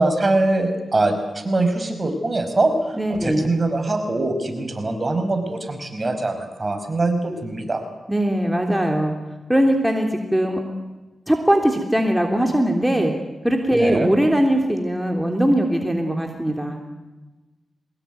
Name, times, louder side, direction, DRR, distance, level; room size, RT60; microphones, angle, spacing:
voice 1, 0.0-7.8 13.7-14.1, right 2 dB, 35° right, 7 dB, 5.3 m, -22 dB
voice 2, 3.0-3.5 8.1-9.1 9.5-10.6 11.3-13.1 13.4-16.8, right 1 dB, 5° right, 2 dB, 3.3 m, -20 dB
23.0 x 19.5 x 9.4 m, 1.1 s
cardioid pair, 60°, 0 cm